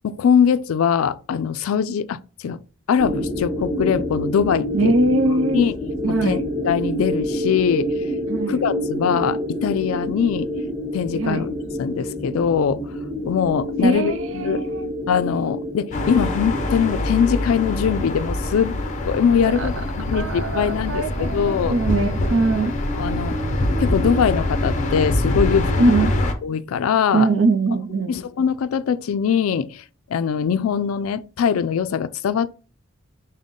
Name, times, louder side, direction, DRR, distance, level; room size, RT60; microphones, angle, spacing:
voice 1, 0.0-2.6 2.9-4.9 5.5-5.7 6.2-7.9 8.5-10.5 10.9-12.9 13.2-14.6 15.1-18.8 19.1-21.8 22.9-23.4 23.8-25.9 26.4-27.3 28.1-29.8 30.1-32.5, left 7 dB, 80° left, 0.3 m, -22 dB
sound 1, 3.0-19.9, equal, 20° right, 1.4 m, -28 dB
voice 2, 4.7-5.6 6.0-6.4 8.3-8.6 11.2-11.5 13.8-14.9 19.6-19.7 20.1-22.7 25.8-26.1 27.1-28.1, right 2 dB, 65° right, 0.6 m, -21 dB
sound 2, 15.9-26.3, left 1 dB, 35° left, 0.5 m, -24 dB
5.3 x 2.1 x 3.6 m
head